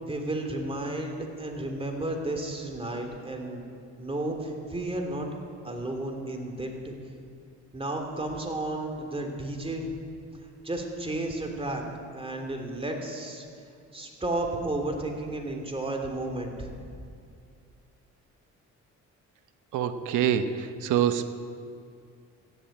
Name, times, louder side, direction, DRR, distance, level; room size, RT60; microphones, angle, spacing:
voice 1, 0.0-3.6 4.0-5.3 5.6-6.9 7.7-9.9 10.6-11.8 12.1-13.4 13.9-16.8, right 1 dB, 20° right, 2 dB, 3.1 m, -32 dB
voice 2, 19.7-21.3, right 9 dB, 85° right, 10 dB, 1.0 m, -25 dB
15.0 x 11.0 x 8.7 m, 2.4 s
cardioid pair, 90°, 30 cm